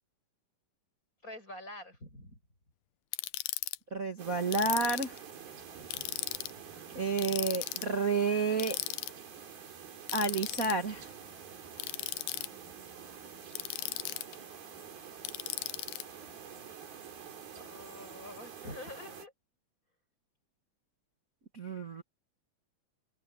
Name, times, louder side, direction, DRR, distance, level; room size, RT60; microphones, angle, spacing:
voice 1, 1.2-2.4 12.4-14.4 17.5-19.3, left 1 dB, 20° left, 7.7 m, -48 dB
Ratchet pawl, 3.1-3.8 4.5-5.2 5.9-6.5 7.2-7.9 8.6-9.1 10.1-10.7 11.8-12.5 13.5-14.4 15.3-16.0, left 17 dB, 85° left, 2.7 m, -37 dB
voice 2, 3.9-5.2 6.9-8.8 10.1-11.1 21.5-22.0, right 3 dB, 55° right, 0.9 m, -30 dB
sound 1, 4.2-19.3, right 7 dB, 75° right, 5.7 m, -48 dB
open air
omnidirectional pair, 4.4 m